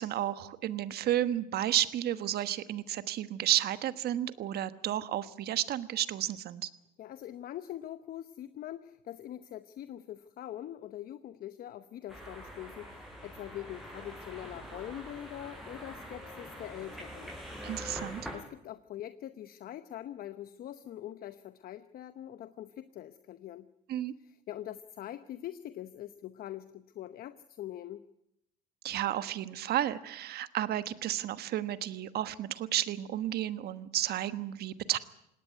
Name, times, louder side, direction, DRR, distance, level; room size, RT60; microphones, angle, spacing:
voice 1, 0.0-6.7 17.6-18.2 23.9-24.1 28.8-35.0, right 12 dB, 55° right, 13 dB, 1.3 m, -32 dB
voice 2, 7.0-17.3 18.3-23.7 24.2-28.0, left 12 dB, 50° left, 12 dB, 0.9 m, -43 dB
sound 1, 12.1-18.4, equal, ahead, 6.5 m, -44 dB
19.5 x 17.5 x 9.4 m, 0.80 s
supercardioid pair, 95°, 19 cm